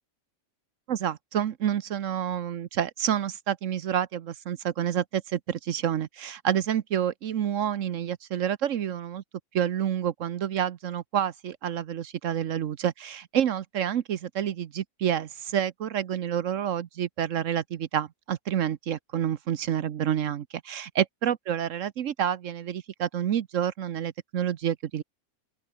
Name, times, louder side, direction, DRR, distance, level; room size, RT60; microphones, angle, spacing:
voice 1, 0.9-9.2 9.5-25.0, right 9 dB, 65° right, 1.1 m, -28 dB
open air
omnidirectional pair, 1.4 m